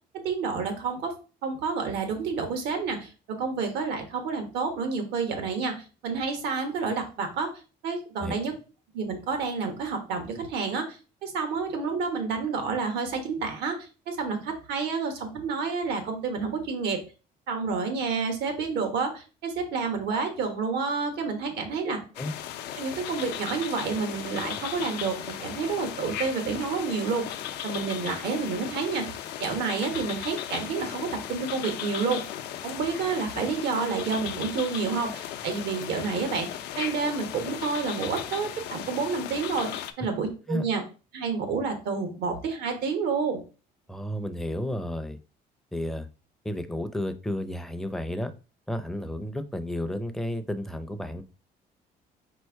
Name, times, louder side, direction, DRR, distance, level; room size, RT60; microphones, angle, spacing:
voice 1, 0.2-1.1 1.4-3.1 3.4-5.7 6.0-7.5 7.8-8.5 8.9-11.0 11.2-13.8 14.1-17.0 17.5-22.0 22.7-27.3 27.6-29.0 29.4-32.2 32.6-36.5 36.8-39.7 40.0-40.8 41.1-43.4, right 5 dB, 80° right, 6 dB, 1.3 m, -29 dB
voice 2, 21.8-22.3 40.5-40.6 43.9-45.2 45.7-46.1 46.4-48.3 48.7-51.2, left 1 dB, ahead, 7 dB, 0.5 m, -32 dB
sound 1, 22.1-39.9, left 11 dB, 80° left, 0.5 m, -36 dB
4.5 x 2.5 x 4.6 m, 0.34 s
cardioid pair, 110°, 17 cm